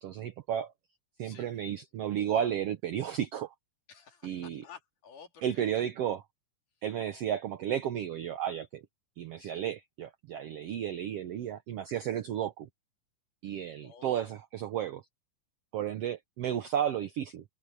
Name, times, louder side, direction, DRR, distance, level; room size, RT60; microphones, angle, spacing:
voice 1, 0.0-0.7 1.2-3.5 4.2-4.6 5.4-6.2 6.8-8.8 9.2-12.7 13.4-15.0 15.7-17.4, right 10 dB, 75° right, 1.4 m, -33 dB
voice 2, 1.2-1.6 3.9-5.9 9.4-9.7 13.8-14.4, left 6 dB, 70° left, 4.7 m, -53 dB
omnidirectional pair, 3.8 m